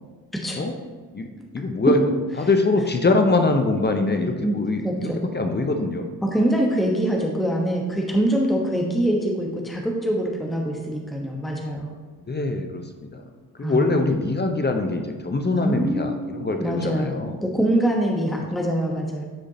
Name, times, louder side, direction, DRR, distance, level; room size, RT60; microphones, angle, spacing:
voice 1, 1.5-2.1 2.4-6.0 12.3-13.2 13.6-17.4, left 2 dB, 20° left, 5 dB, 0.8 m, -23 dB
voice 2, 4.8-5.2 6.2-11.9 13.6-14.0 15.5-16.3 16.6-17.1 17.4-19.2, right 1 dB, ahead, -1 dB, 1.1 m, -24 dB
10.0 x 4.9 x 2.9 m, 1.4 s
hypercardioid pair, 45°, 49 cm